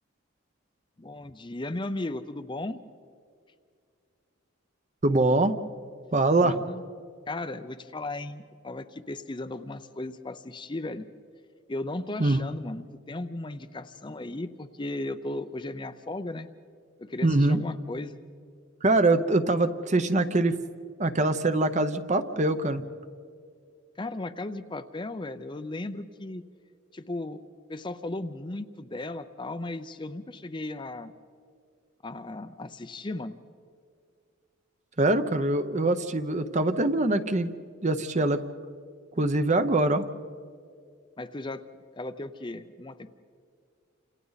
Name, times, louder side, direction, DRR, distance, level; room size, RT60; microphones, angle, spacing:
voice 1, 1.0-2.8 6.3-6.8 7.3-11.1 11.7-16.5 17.0-18.2 24.0-26.4 26.9-27.4 27.7-31.1 32.0-33.4 41.2-41.6 41.9-43.1, left 2 dB, 25° left, 10 dB, 0.6 m, -36 dB
voice 2, 5.0-5.5 6.1-6.5 12.2-12.4 17.2-17.6 18.8-20.6 21.0-22.8 35.0-37.5 37.8-38.4 39.2-40.1, right 2 dB, 35° right, 10 dB, 0.8 m, -23 dB
29.5 x 27.0 x 4.1 m, 2.2 s
head